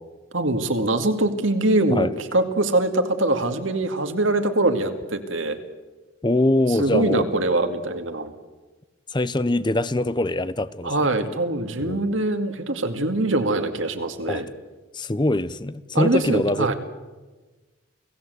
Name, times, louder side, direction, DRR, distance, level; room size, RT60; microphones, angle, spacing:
voice 1, 0.3-5.6 6.7-8.3 10.8-14.4 15.9-16.7, right 2 dB, 70° right, 7 dB, 2.3 m, -23 dB
voice 2, 6.2-7.3 9.1-10.9 11.8-12.1 14.3-14.4 14.9-16.7, left 1 dB, 20° left, 16 dB, 0.7 m, -23 dB
29.5 x 17.5 x 8.1 m, 1.2 s
head